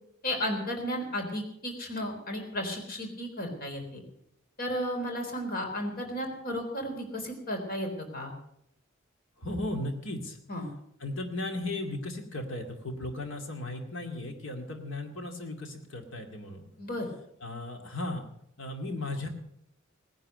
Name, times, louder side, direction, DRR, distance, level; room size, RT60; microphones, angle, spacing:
voice 1, 0.2-4.0 4.6-8.3 10.5-10.7 16.8-17.1, equal, 45° left, 3 dB, 3.8 m, -34 dB
voice 2, 9.4-10.4 11.0-16.7 17.4-18.2 18.6-19.3, left 2 dB, 65° left, 4 dB, 2.4 m, -36 dB
18.5 x 10.5 x 6.6 m, 0.73 s
head